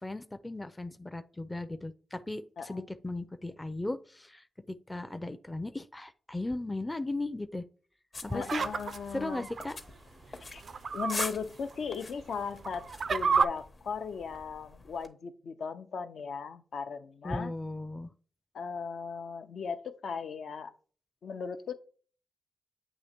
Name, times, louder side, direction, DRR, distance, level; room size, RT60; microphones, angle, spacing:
voice 1, 0.0-7.6 8.2-8.6 9.1-9.8 17.2-18.1, left 2 dB, 15° left, 9 dB, 0.4 m, -37 dB
sound 1, 8.1-15.1, left 3 dB, 40° left, 0.8 m, -44 dB
voice 2, 8.3-9.5 10.5-10.6 10.9-17.5 18.5-20.7 21.2-21.7, left 6 dB, 75° left, 8 dB, 0.7 m, -37 dB
sound 2, 8.3-9.7 10.6-11.3 11.7-11.8 12.5-13.5, right 5 dB, 55° right, 0.3 m, -30 dB
8.4 x 2.9 x 4.3 m, 0.41 s
wide cardioid pair, 115°, 0 cm